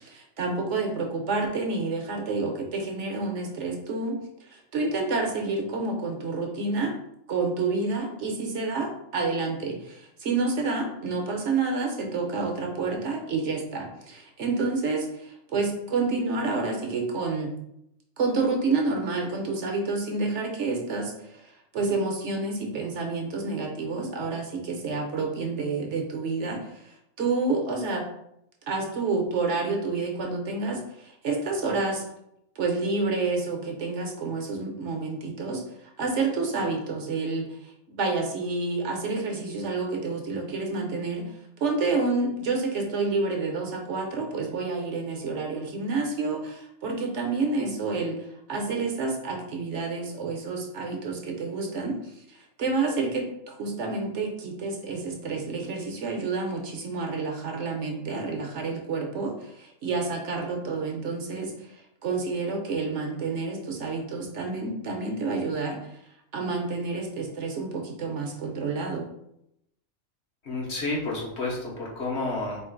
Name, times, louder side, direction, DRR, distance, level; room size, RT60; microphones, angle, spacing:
voice 1, 0.0-6.9 7.3-17.5 18.2-28.1 28.7-32.0 32.6-66.0 66.3-69.1, right 3 dB, 65° right, 2 dB, 1.0 m, -29 dB
voice 2, 70.4-72.6, left 2 dB, 55° left, -3 dB, 1.3 m, -30 dB
4.4 x 2.5 x 3.7 m, 0.78 s
omnidirectional pair, 1.4 m